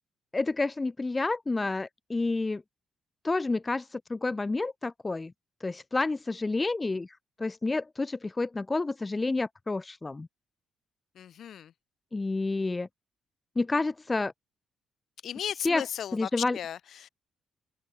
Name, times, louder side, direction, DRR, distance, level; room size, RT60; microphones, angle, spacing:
voice 1, 0.3-2.6 3.2-5.3 5.6-7.1 7.4-10.3 12.1-12.9 13.6-14.3 15.6-15.8 16.1-16.6, left 3 dB, 20° left, 0.7 m, -29 dB
voice 2, 11.1-11.7 15.2-17.1, left 9 dB, 65° left, 4.6 m, -36 dB
open air
cardioid pair, 90°, 0 cm